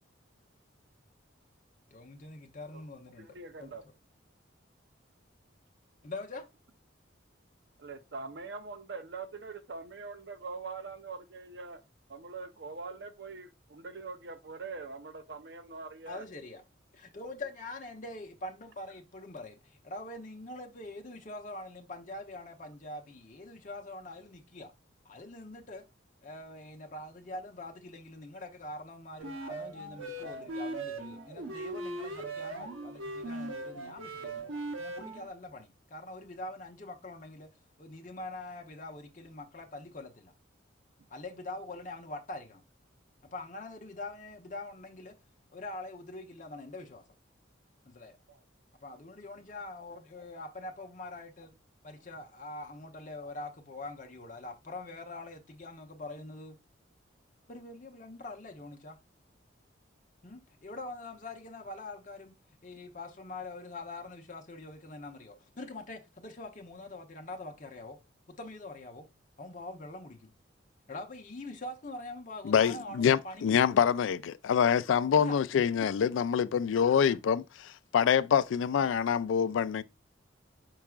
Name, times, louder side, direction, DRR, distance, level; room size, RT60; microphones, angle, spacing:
voice 1, 1.9-3.8 6.0-6.4 16.1-16.6 16.9-24.7 25.0-25.8 26.2-37.5 37.8-40.3 41.1-42.6 43.3-45.1 45.5-47.0 47.8-48.2 48.8-51.5 51.8-56.6 57.5-59.0 60.2-62.3 62.6-68.0 68.4-69.1 69.4-70.3 70.9-73.9 75.1-75.7 77.0-77.2, left 2 dB, 40° left, 0.7 m, -44 dB
voice 2, 3.2-3.8 7.8-11.8 12.1-16.2 48.3-48.4, right 4 dB, 60° right, 0.6 m, -43 dB
sound 1, 29.2-35.3, right 2 dB, 85° right, 0.9 m, -39 dB
voice 3, 72.4-79.8, left 7 dB, 80° left, 0.3 m, -26 dB
4.7 x 4.6 x 2.3 m
head